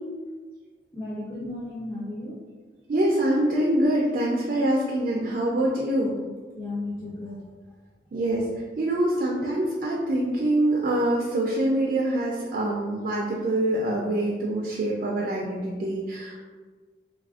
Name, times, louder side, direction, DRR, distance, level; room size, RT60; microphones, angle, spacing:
voice 1, 0.9-2.4 6.6-7.4, left 2 dB, 15° left, -8 dB, 0.4 m, -34 dB
voice 2, 2.9-6.2 8.1-8.4 8.8-16.4, right 1 dB, 50° right, -2 dB, 0.3 m, -25 dB
3.3 x 2.4 x 2.3 m, 1.4 s
head